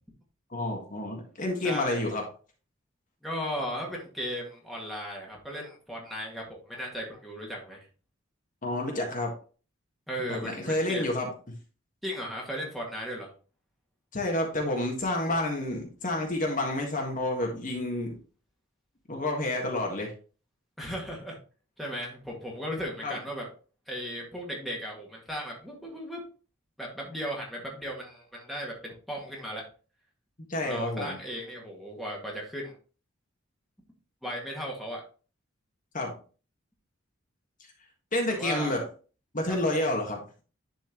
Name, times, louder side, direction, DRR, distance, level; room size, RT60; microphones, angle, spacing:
voice 1, 0.5-2.2 8.6-9.3 10.4-11.3 14.1-18.2 19.1-20.1 23.0-23.2 30.5-31.2 35.9-36.1 38.1-38.8 39.3-40.2, left 1 dB, 40° left, 1 dB, 1.6 m, -29 dB
voice 2, 1.6-2.1 3.2-7.8 10.1-11.1 12.0-13.3 20.8-21.4 21.8-23.5 23.9-26.2 26.8-29.6 30.6-32.8 34.2-35.0 38.3-38.7 39.5-39.7, equal, ahead, -3 dB, 1.9 m, -36 dB
10.5 x 4.5 x 3.0 m, 0.36 s
head